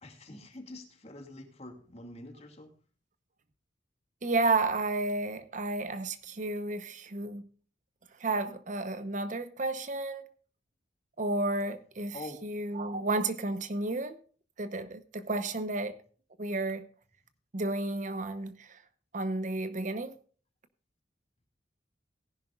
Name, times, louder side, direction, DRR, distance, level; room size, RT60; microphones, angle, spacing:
voice 1, 0.0-2.7 12.1-12.4, left 2 dB, 35° left, 2.4 m, -45 dB
voice 2, 4.2-7.4 8.2-10.2 11.2-12.2 12.4-14.2 14.6-16.0 16.4-16.9 17.5-18.8 19.1-20.2, right 2 dB, 45° right, 0.9 m, -32 dB
18.0 x 11.0 x 2.4 m
head